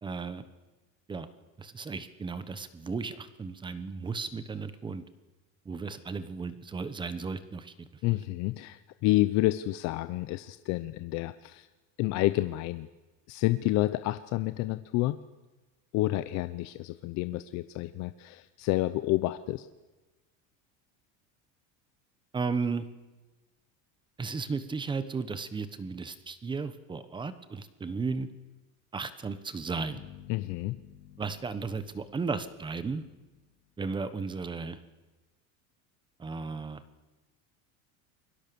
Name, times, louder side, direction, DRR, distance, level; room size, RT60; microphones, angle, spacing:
voice 1, 0.0-0.4 1.1-1.3 1.6-5.0 5.6-7.7 22.3-22.8 24.2-28.3 28.9-30.0 31.2-33.0 33.8-34.8 36.2-36.8, right 4 dB, 10° right, 13 dB, 1.2 m, -34 dB
voice 2, 8.0-11.7 12.0-12.9 13.3-15.2 15.9-19.7 30.3-30.8, left 17 dB, 45° left, 12 dB, 0.8 m, -29 dB
sound 1, 29.9-33.9, left 11 dB, 80° left, 3.6 m, -53 dB
28.5 x 23.0 x 7.0 m, 1.2 s
cardioid pair, 175°, 38 cm